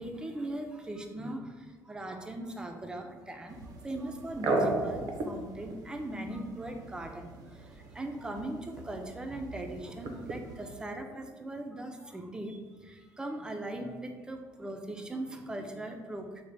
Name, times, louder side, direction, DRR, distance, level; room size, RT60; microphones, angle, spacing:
voice 1, 0.0-16.4, right 1 dB, 10° right, 4 dB, 0.4 m, -39 dB
sound 1, 3.5-10.8, right 2 dB, 65° right, 0.5 m, -37 dB
3.3 x 2.1 x 3.9 m, 1.4 s
cardioid pair, 120°, 7 cm